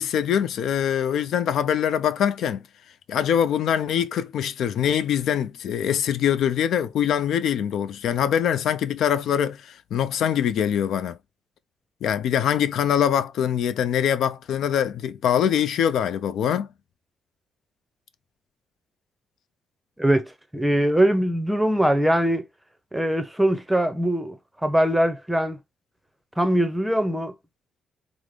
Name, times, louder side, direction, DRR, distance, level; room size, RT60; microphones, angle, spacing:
voice 1, 0.0-2.6 3.1-11.2 12.0-16.7, left 9 dB, 75° left, 0.3 m, -23 dB
voice 2, 20.5-22.4 22.9-25.6 26.4-27.3, right 1 dB, 5° right, 0.7 m, -22 dB
3.7 x 2.0 x 3.2 m
cardioid pair, 90°, 0 cm